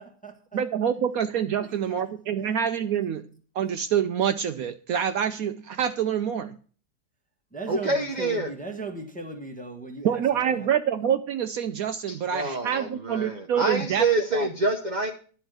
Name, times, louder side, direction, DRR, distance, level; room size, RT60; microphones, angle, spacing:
voice 1, 0.0-0.6 1.6-2.0 7.5-10.7, right 2 dB, 5° left, 1.0 m, -38 dB
voice 2, 0.5-3.3 3.5-6.6 10.0-14.0 14.3-14.5, right 8 dB, 70° right, 1.0 m, -26 dB
voice 3, 7.7-8.5 12.1-15.1, right 2 dB, 35° right, 0.8 m, -27 dB
10.5 x 4.4 x 7.8 m
omnidirectional pair, 1.8 m